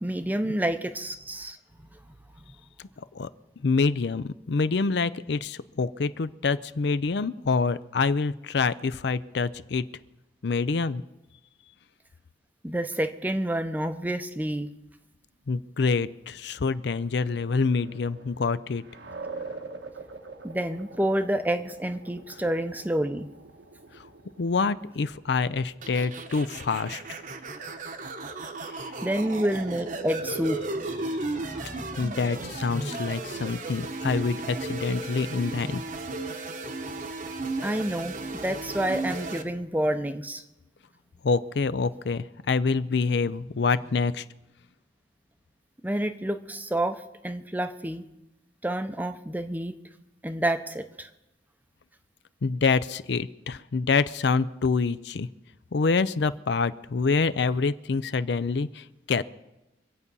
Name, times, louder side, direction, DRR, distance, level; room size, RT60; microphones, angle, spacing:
voice 1, 0.0-1.6 12.6-14.7 20.4-23.3 29.0-30.8 31.2-32.0 37.6-40.4 45.8-47.0 47.2-48.0 48.6-49.7 50.2-51.1, right 1 dB, 10° right, 9 dB, 0.6 m, -29 dB
voice 2, 3.6-9.8 10.4-11.0 15.5-18.8 24.0-24.1 24.4-27.0 28.8-28.9 31.0-31.2 32.0-35.8 41.2-44.2 52.4-55.3 55.7-59.2, left 4 dB, 65° left, 15 dB, 0.5 m, -26 dB
sound 1, 16.5-27.9, right 3 dB, 85° right, 1.3 m, -45 dB
sound 2, 25.8-39.4, right 2 dB, 45° right, 1.0 m, -35 dB
25.0 x 8.3 x 5.4 m, 0.97 s
head